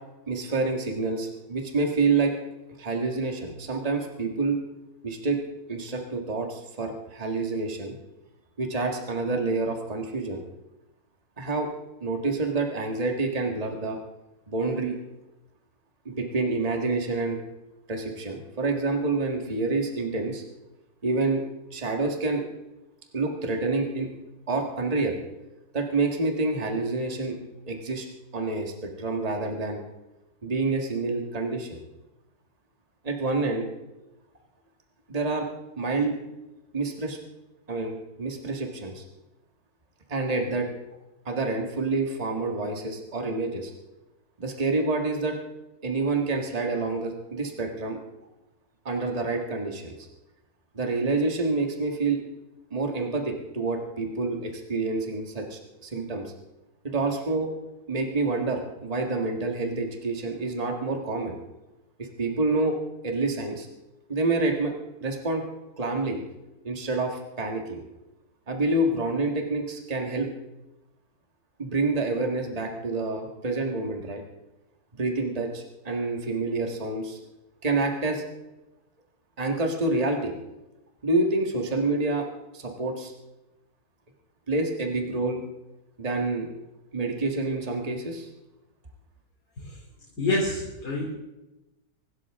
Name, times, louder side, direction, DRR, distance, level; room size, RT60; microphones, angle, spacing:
voice 1, 0.3-2.3 2.8-4.6 5.0-5.4 5.7-7.9 8.6-10.4 11.4-11.7 12.0-14.0 14.5-15.0 16.1-17.4 17.9-20.4 21.0-21.4 21.7-22.4 23.1-24.1 24.5-25.2 25.7-27.4 27.7-28.1 28.3-29.8 30.4-31.8 33.0-33.7 35.1-35.5 35.8-36.2 36.7-37.2 37.7-39.0 40.1-40.7 41.3-43.7 44.4-45.4 45.8-48.0 48.9-49.9 50.7-52.2 52.7-56.3 56.8-57.5 57.9-61.3 62.0-62.7 63.0-63.7 64.1-64.7 65.0-65.4 65.8-66.2 66.6-67.8 68.5-70.3 71.6-74.2 75.0-77.2 77.6-78.2 79.4-80.3 81.0-82.3 82.5-83.1 84.5-85.4 86.0-86.5 86.9-88.3, right 3 dB, 25° right, 2 dB, 1.8 m, -27 dB
voice 2, 90.2-91.1, left 2 dB, 90° left, -4 dB, 3.9 m, -26 dB
24.5 x 12.5 x 3.7 m, 0.99 s
omnidirectional pair, 1.6 m